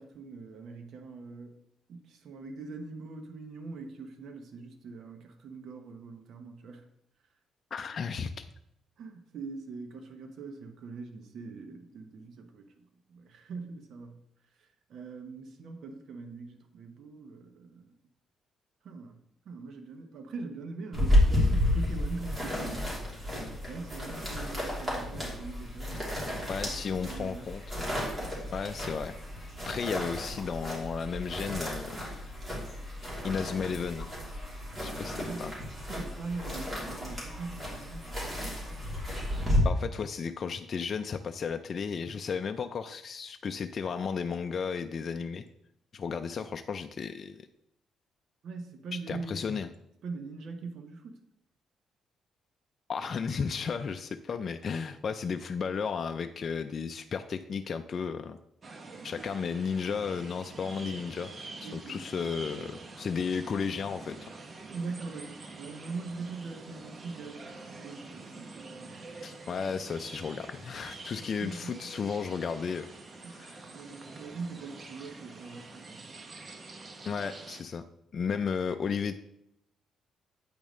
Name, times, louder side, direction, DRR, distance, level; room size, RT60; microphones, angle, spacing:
voice 1, 0.0-1.5 1.9-6.9 9.0-14.2 14.6-17.9 18.8-19.2 19.4-22.9 23.7-27.5 28.1-28.4 35.1-35.5 35.9-38.6 48.4-49.6 50.0-51.2 61.6-62.0 64.7-69.0 71.2-71.9 73.2-73.5 73.7-76.0, right 4 dB, 65° right, 5 dB, 0.9 m, -42 dB
voice 2, 7.7-8.4 26.5-27.9 28.5-32.4 33.2-34.1 34.8-35.5 39.6-45.4 45.9-47.5 49.1-49.7 52.9-58.4 59.0-64.2 69.2-72.9 73.3-73.6 77.0-77.8 78.1-79.2, left 6 dB, 50° left, 7 dB, 0.4 m, -34 dB
sound 1, 20.9-39.6, left 1 dB, 25° right, 3.1 m, -32 dB
sound 2, 58.6-77.6, right 3 dB, 40° right, 0.9 m, -46 dB
8.7 x 5.1 x 3.2 m, 0.75 s
cardioid pair, 90°, 0 cm